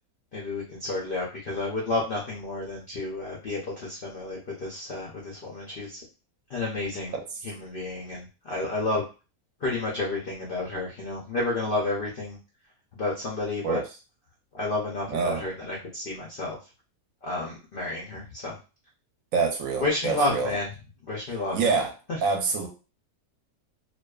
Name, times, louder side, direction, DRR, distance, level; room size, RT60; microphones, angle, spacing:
voice 1, 0.3-6.0 6.5-7.1 7.4-9.0 9.6-12.4 12.9-13.8 14.5-16.6 17.2-18.6 19.8-20.7 21.0-21.6, left 2 dB, 60° left, -3 dB, 0.5 m, -30 dB
voice 2, 15.1-15.4 19.3-20.6 21.5-21.9 22.2-22.7, right 4 dB, 70° right, 3 dB, 0.9 m, -26 dB
2.5 x 2.3 x 2.2 m, 0.32 s
omnidirectional pair, 1.6 m